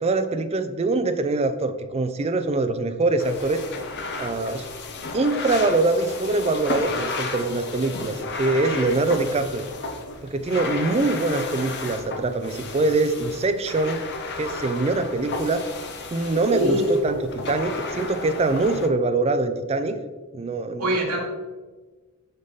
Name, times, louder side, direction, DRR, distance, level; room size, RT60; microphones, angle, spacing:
voice 1, 0.0-3.6 4.2-4.7 5.1-9.6 10.3-14.0 14.4-15.7 16.1-20.0 20.3-20.9, right 3 dB, 30° right, 9 dB, 0.4 m, -23 dB
sound 1, 3.2-18.9, left 3 dB, 50° left, 0.6 m, -33 dB
voice 2, 16.5-16.9 20.8-21.2, right 1 dB, 90° right, -2 dB, 1.5 m, -23 dB
5.4 x 5.2 x 3.9 m, 1.3 s
head